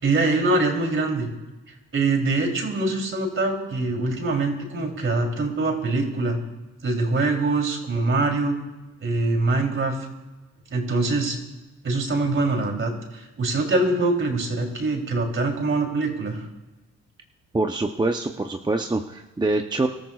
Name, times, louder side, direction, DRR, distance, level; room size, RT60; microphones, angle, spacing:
voice 1, 0.0-1.3 1.9-6.4 6.8-8.6 9.0-10.0 10.7-11.4 11.8-16.4, right 2 dB, 40° right, 2 dB, 3.3 m, -23 dB
voice 2, 17.5-19.9, right 2 dB, 15° right, 4 dB, 0.7 m, -25 dB
25.0 x 13.5 x 2.4 m, 1.1 s
cardioid pair, 90°, 30 cm